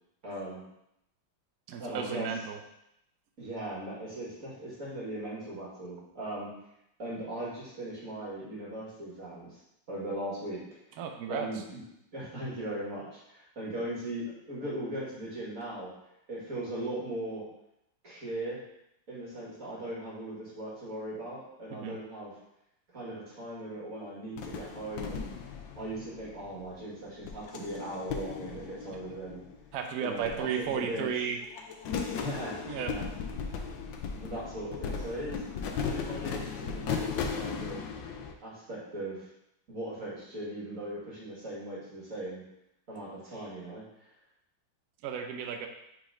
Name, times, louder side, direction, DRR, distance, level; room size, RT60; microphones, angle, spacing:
voice 1, 0.2-0.6 1.8-2.3 3.4-6.5 7.0-9.6 9.9-10.6 11.3-11.8 12.1-15.9 16.3-17.4 18.0-18.6 19.1-22.3 22.9-25.3 25.7-29.4 30.0-31.1 32.1-33.0 34.2-35.4 35.8-37.8 38.4-39.3 39.7-42.4 42.9-43.8, right 1 dB, 40° right, -7 dB, 2.2 m, -38 dB
voice 2, 1.7-2.6 11.0-11.5 21.8-22.0 29.7-31.4 32.7-32.9 45.0-45.7, right 7 dB, 70° right, 4 dB, 0.9 m, -33 dB
sound 1, 24.4-26.7 27.2-29.7 30.2-31.1 31.4-38.3, left 6 dB, 70° left, 1.2 m, -37 dB
4.8 x 4.0 x 5.0 m, 0.81 s
omnidirectional pair, 2.3 m